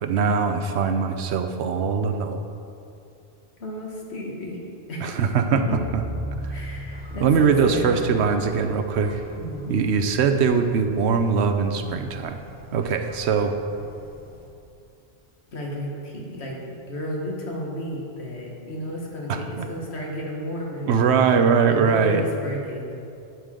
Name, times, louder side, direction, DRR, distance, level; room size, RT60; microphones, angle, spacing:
voice 1, 0.0-2.4 5.0-5.6 7.2-9.2 9.7-12.4 12.7-13.5 19.3-19.7 20.9-22.2, right 6 dB, 90° right, 7 dB, 0.9 m, -21 dB
voice 2, 3.6-4.6 4.9-5.8 6.5-8.3 9.4-9.8 15.5-21.4 21.7-22.9, left 1 dB, 85° left, -2 dB, 1.8 m, -33 dB
sound 1, 5.7-10.1, right 1 dB, 60° right, 1.5 m, -36 dB
sound 2, 6.4-14.5, left 1 dB, 10° left, 0.9 m, -46 dB
11.0 x 6.8 x 3.7 m, 2.6 s
omnidirectional pair, 1.1 m